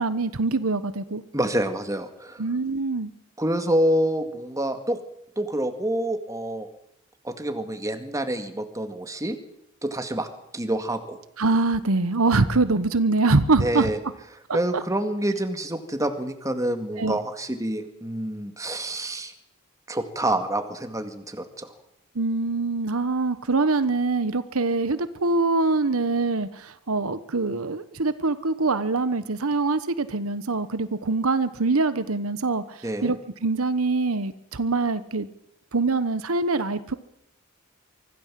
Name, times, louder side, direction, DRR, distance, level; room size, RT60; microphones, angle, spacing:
voice 1, 0.0-1.2 2.4-3.1 11.4-13.9 14.5-14.8 17.0-17.2 22.1-35.3 35.7-36.9, right 3 dB, 75° right, 13 dB, 1.1 m, -24 dB
voice 2, 1.3-2.4 3.4-5.0 5.4-6.7 7.2-9.4 9.8-10.3 10.5-11.2 13.6-14.0 14.5-19.3 19.9-21.7 32.8-33.1, right 1 dB, 15° right, 7 dB, 2.1 m, -27 dB
24.5 x 16.5 x 7.6 m, 0.78 s
head